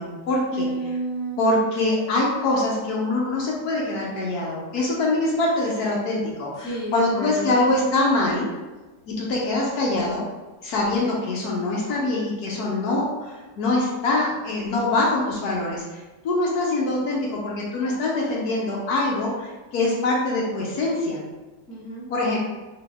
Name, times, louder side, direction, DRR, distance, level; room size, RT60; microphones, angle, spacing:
voice 1, 0.0-0.7 1.4-8.5 9.1-10.2 10.6-21.2 22.1-22.4, left 2 dB, 70° left, -3 dB, 1.2 m, -24 dB
voice 2, 0.5-1.6 6.6-7.6 21.7-22.0, right 1 dB, 5° left, -9 dB, 1.0 m, -30 dB
4.0 x 2.8 x 3.5 m, 1.2 s
omnidirectional pair, 1.8 m